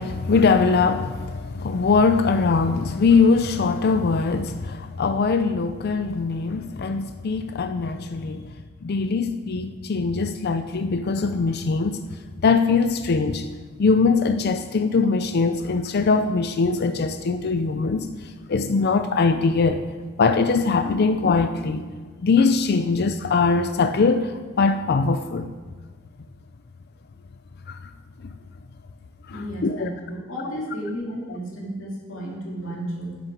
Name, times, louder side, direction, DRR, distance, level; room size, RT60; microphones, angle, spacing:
voice 1, 0.0-8.5 8.8-12.0 12.4-13.5 13.8-19.8 20.2-21.9 22.2-25.5 27.7-27.9 29.3-29.9, left 4 dB, 55° left, 0.4 m, -22 dB
voice 2, 29.3-33.2, equal, 75° left, 2.6 m, -33 dB
9.4 x 6.4 x 6.0 m
head